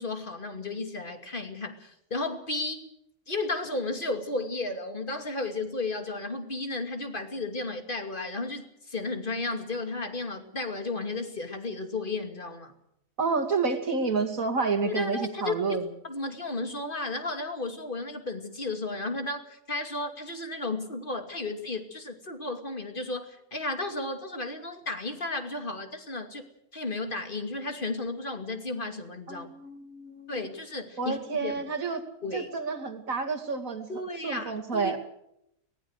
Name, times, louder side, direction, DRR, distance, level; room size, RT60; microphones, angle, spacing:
voice 1, 0.0-2.8 3.3-12.7 14.8-15.8 16.0-26.4 26.7-29.5 30.3-31.6 32.2-32.5 33.9-34.9, left 2 dB, 30° left, 6 dB, 2.8 m, -33 dB
voice 2, 13.2-15.9 29.3-30.5 31.0-32.0 32.3-33.9 34.2-35.0, right 4 dB, 60° right, 4 dB, 3.0 m, -29 dB
23.5 x 19.5 x 6.5 m, 0.79 s
omnidirectional pair, 1.7 m